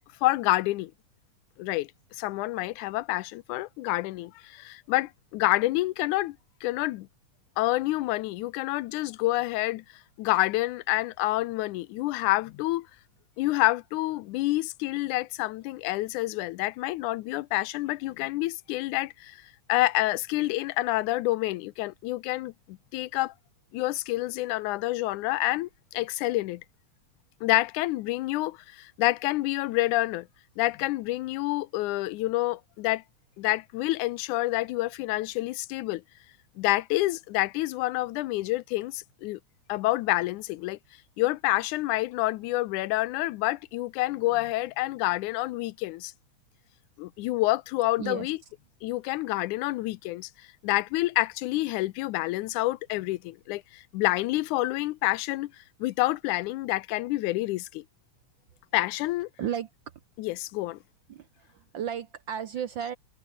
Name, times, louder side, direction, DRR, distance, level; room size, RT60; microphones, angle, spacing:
voice 1, 0.2-0.9 1.6-1.9 2.2-6.4 6.6-7.1 7.6-9.8 10.2-12.9 13.4-19.4 19.7-23.3 23.7-26.6 27.4-30.3 30.6-33.0 33.4-36.0 36.6-39.4 39.7-40.8 41.2-46.1 47.0-48.4 48.8-50.3 50.6-55.5 55.8-57.8 58.7-59.3 60.2-60.8, left 18 dB, 90° left, 2.2 m, -28 dB
voice 2, 59.4-59.7 61.1-62.9, right 9 dB, 75° right, 1.1 m, -34 dB
omnidirectional pair, 3.4 m